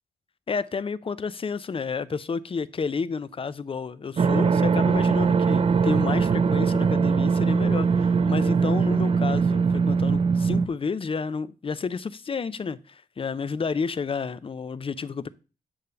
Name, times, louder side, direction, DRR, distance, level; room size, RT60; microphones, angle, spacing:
voice 1, 0.5-15.3, left 5 dB, 35° left, 0.5 m, -31 dB
sound 1, 4.2-10.7, right 5 dB, 35° right, 0.4 m, -21 dB
8.6 x 3.3 x 6.7 m
cardioid pair, 110°, 17 cm